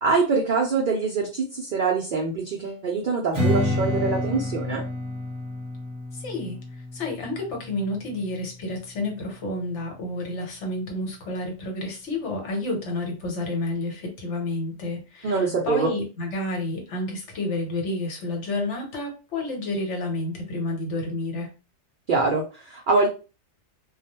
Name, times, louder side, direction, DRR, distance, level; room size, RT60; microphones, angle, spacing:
voice 1, 0.0-4.8 15.2-15.9 22.1-23.1, right 4 dB, 70° right, 0 dB, 0.4 m, -24 dB
Strum, 3.3-8.6, left 1 dB, 25° right, 0.9 m, -29 dB
voice 2, 6.2-6.6 6.9-21.5, left 2 dB, 65° left, 1 dB, 1.1 m, -30 dB
2.3 x 2.1 x 2.8 m, 0.33 s
omnidirectional pair, 1.4 m